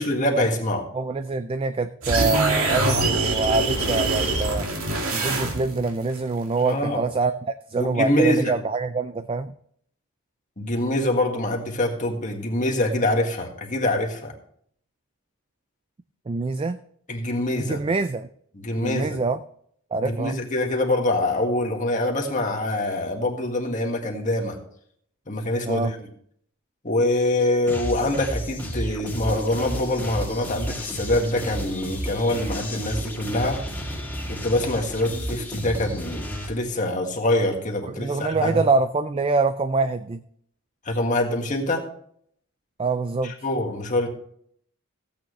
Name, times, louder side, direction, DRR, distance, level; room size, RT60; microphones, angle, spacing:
voice 1, 0.0-0.8 6.6-7.0 7.8-8.5 10.6-14.3 17.1-17.8 18.5-19.2 20.0-24.6 25.3-26.1 26.8-33.6 34.3-38.6 40.8-41.8 43.2-44.1, left 1 dB, 35° left, 2 dB, 1.8 m, -24 dB
voice 2, 0.9-4.7 5.1-9.5 16.3-16.8 17.6-18.3 18.8-19.4 19.9-20.4 25.7-25.9 38.0-40.2 42.8-43.3, right 3 dB, 25° right, 11 dB, 0.3 m, -25 dB
sound 1, 2.0-5.9, right 2 dB, 75° right, 2.3 m, -24 dB
sound 2, 27.7-36.5, equal, 10° left, 2.2 m, -32 dB
15.5 x 8.9 x 3.2 m, 0.66 s
head